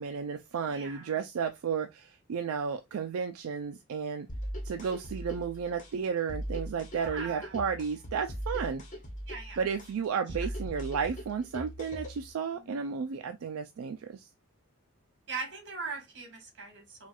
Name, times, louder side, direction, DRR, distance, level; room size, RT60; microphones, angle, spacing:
voice 1, 0.0-4.3 4.6-8.8 9.6-14.3, right 6 dB, 85° right, 0.4 m, -33 dB
voice 2, 0.7-1.1 6.9-7.6 9.3-9.6 10.3-10.4 12.5-13.3 15.3-17.1, right 4 dB, 60° right, 1.7 m, -41 dB
sound 1, 4.3-12.3, equal, 35° left, 1.0 m, -40 dB
4.2 x 2.3 x 2.3 m
head